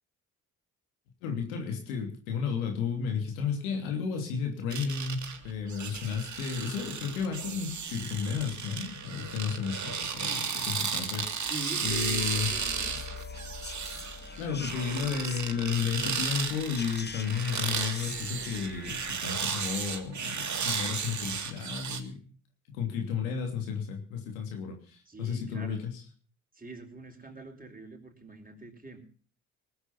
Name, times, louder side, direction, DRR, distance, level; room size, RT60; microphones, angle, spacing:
voice 1, 1.2-11.5 11.8-12.5 13.9-14.1 14.4-22.2 22.7-26.0, left 6 dB, 85° left, 2 dB, 3.1 m, -33 dB
sound 1, 4.7-22.0, right 6 dB, 45° right, 2.3 m, -34 dB
voice 2, 11.5-13.0 25.1-25.9 26.5-29.0, right 2 dB, 20° right, 3 dB, 4.6 m, -43 dB
sound 2, 11.9-19.2, left 4 dB, 25° left, 1.5 m, -43 dB
19.5 x 8.0 x 7.1 m, 0.42 s
hypercardioid pair, 45°, 41 cm